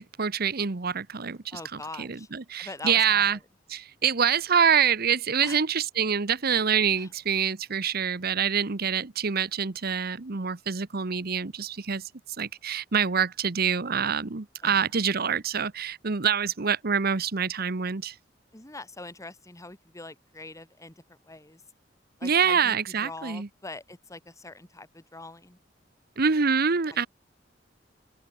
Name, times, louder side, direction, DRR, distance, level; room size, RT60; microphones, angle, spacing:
voice 1, 0.0-3.4 3.7-12.1 12.4-18.1 22.2-23.5 26.2-27.1, right 7 dB, 55° right, 1.0 m, -26 dB
voice 2, 1.5-2.3 2.6-3.4 5.4-5.6 7.0-7.1 14.6-14.8 18.5-21.6 22.2-25.6, left 2 dB, 15° left, 2.4 m, -43 dB
open air
head